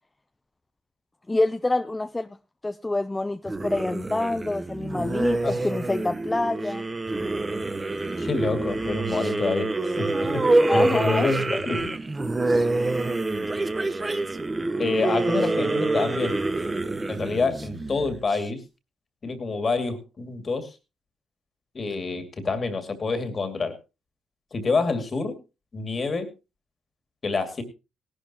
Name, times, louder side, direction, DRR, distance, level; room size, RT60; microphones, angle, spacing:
voice 1, 1.3-2.4 2.6-6.8 10.7-11.8, left 2 dB, 15° left, 0.5 m, -27 dB
sound 1, 3.5-18.4, right 2 dB, 20° right, 1.0 m, -26 dB
voice 2, 8.2-10.4 10.7-11.9 14.8-16.4 17.1-18.6 19.2-20.7 21.7-23.8 24.5-25.4 25.7-26.3 27.2-27.6, left 3 dB, 35° left, 2.4 m, -27 dB
18.0 x 11.5 x 2.9 m
cardioid pair, 90°, 0 cm